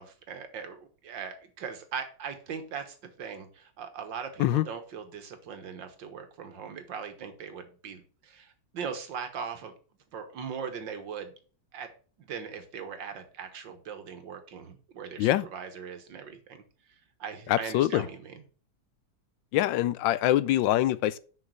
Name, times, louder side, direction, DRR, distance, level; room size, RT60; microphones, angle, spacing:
voice 1, 0.0-9.7 10.1-11.3 11.7-11.9 12.2-16.6 17.2-18.4, right 6 dB, 85° right, 2.0 m, -40 dB
voice 2, 17.5-18.0 19.5-21.2, left 14 dB, 85° left, 1.3 m, -24 dB
6.6 x 5.3 x 6.5 m
omnidirectional pair, 2.0 m